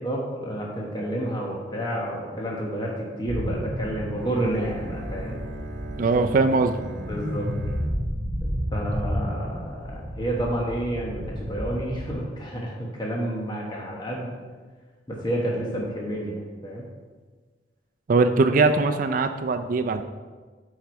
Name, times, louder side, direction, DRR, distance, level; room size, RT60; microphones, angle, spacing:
voice 1, 0.0-5.4 7.1-7.5 8.4-14.3 15.1-16.9, right 1 dB, 25° left, -3 dB, 1.2 m, -30 dB
sound 1, 3.3-12.1, equal, ahead, 1.6 m, -32 dB
Bowed string instrument, 4.2-9.1, right 2 dB, 75° right, 1.1 m, -42 dB
voice 2, 6.0-6.7 18.1-20.0, right 3 dB, 50° right, 6 dB, 0.4 m, -21 dB
9.0 x 4.7 x 4.6 m, 1.4 s
head